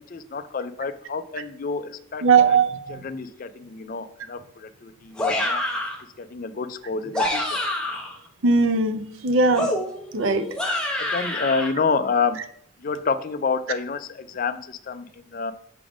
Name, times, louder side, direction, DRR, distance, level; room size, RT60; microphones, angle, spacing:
voice 1, 0.0-2.6 2.9-5.6 6.2-7.6 11.0-12.4 12.8-15.5, left 5 dB, 40° left, 11 dB, 0.4 m, -28 dB
voice 2, 2.2-3.1 8.4-9.7 10.1-10.5, right 4 dB, 70° right, 9 dB, 0.6 m, -19 dB
sound 1, 5.2-6.0 7.0-8.2 9.6-11.7, left 1 dB, 5° left, 0.8 m, -27 dB
6.0 x 3.5 x 4.9 m, 0.66 s
head